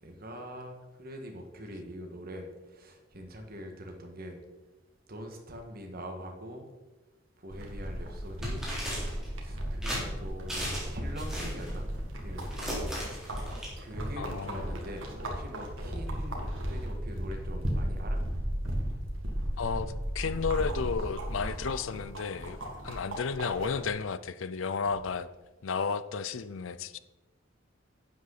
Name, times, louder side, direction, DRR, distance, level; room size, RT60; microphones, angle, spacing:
voice 1, 0.0-4.4 5.1-6.7 7.4-8.8 9.4-12.6 13.4-18.2, equal, 50° right, 3 dB, 1.7 m, -43 dB
sound 1, 7.5-23.9, equal, 80° right, 2.0 m, -35 dB
sound 2, 8.4-9.3 9.8-10.0 10.5-10.9 11.2-11.7 12.4-13.7, equal, 5° right, 3.6 m, -36 dB
voice 2, 14.2-14.6 19.6-22.6 22.8-25.3 25.6-27.0, left 5 dB, 75° left, 15 dB, 0.5 m, -33 dB
11.5 x 8.4 x 4.1 m, 1.1 s
head